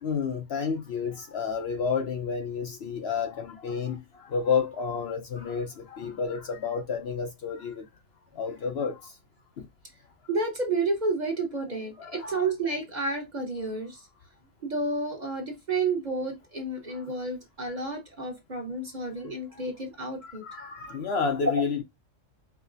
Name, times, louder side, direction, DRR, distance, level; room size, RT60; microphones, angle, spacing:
voice 1, 0.0-7.8 8.3-9.1 9.6-9.7 12.0-12.4 16.9-17.0 20.2-21.8, left 6 dB, 60° left, 0.8 m, -30 dB
voice 2, 10.3-14.0 14.6-20.4 21.4-21.5, right 3 dB, 40° right, 0.9 m, -30 dB
4.8 x 2.0 x 2.5 m
omnidirectional pair, 1.3 m